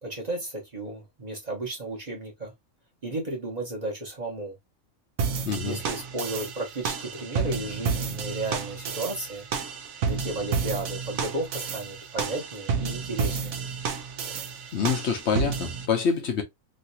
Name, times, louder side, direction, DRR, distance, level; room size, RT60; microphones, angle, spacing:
voice 1, 0.0-2.5 3.0-4.5 5.6-9.5 10.0-13.6, right 2 dB, 35° right, 1.0 m, -33 dB
sound 1, 5.2-15.9, right 5 dB, 85° right, 1.1 m, -31 dB
voice 2, 5.4-5.8 14.7-16.4, left 6 dB, 60° left, 0.9 m, -26 dB
3.1 x 2.7 x 2.7 m
omnidirectional pair, 1.4 m